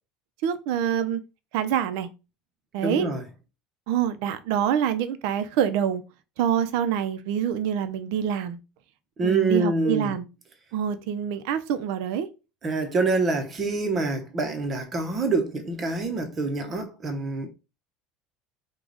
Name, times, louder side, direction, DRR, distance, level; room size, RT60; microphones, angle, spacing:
voice 1, 0.4-1.2 1.5-2.1 2.7-3.1 3.9-6.0 6.4-8.6 9.2-10.3 10.7-12.3, right 9 dB, 65° right, 0.6 m, -26 dB
voice 2, 2.8-3.2 9.2-10.1 12.6-17.5, right 3 dB, 25° right, 0.8 m, -26 dB
4.9 x 2.3 x 3.9 m
cardioid pair, 165°, 0 cm